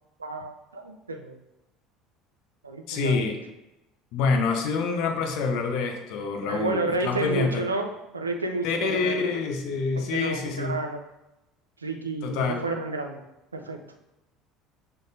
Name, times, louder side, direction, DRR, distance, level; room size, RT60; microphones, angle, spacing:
voice 1, 0.2-1.4 2.6-3.4 6.5-9.4 10.0-11.0 11.8-13.2 13.5-13.8, right 2 dB, 85° right, 4 dB, 0.3 m, -31 dB
voice 2, 2.9-3.4 4.1-7.6 8.6-10.8 12.2-12.7, left 4 dB, 55° left, 5 dB, 0.5 m, -26 dB
6.3 x 2.1 x 2.6 m, 0.94 s
figure-of-eight pair, 65°, 0 cm